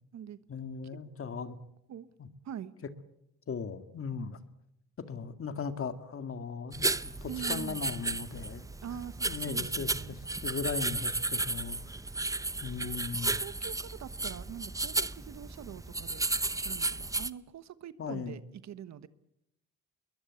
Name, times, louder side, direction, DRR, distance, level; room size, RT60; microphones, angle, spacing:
voice 1, 0.5-1.6 2.2-2.3 3.5-4.4 5.0-8.7 9.3-11.8 12.6-13.4 18.0-18.4, left 5 dB, 45° left, 10 dB, 2.1 m, -38 dB
sound 1, 6.7-17.3, right 2 dB, 10° right, 0.8 m, -34 dB
voice 2, 7.3-7.8 8.8-10.1 12.8-13.0 13.4-16.2 16.5-19.1, right 9 dB, 65° right, 14 dB, 1.3 m, -44 dB
22.0 x 20.5 x 8.3 m, 0.80 s
cardioid pair, 90°, 30 cm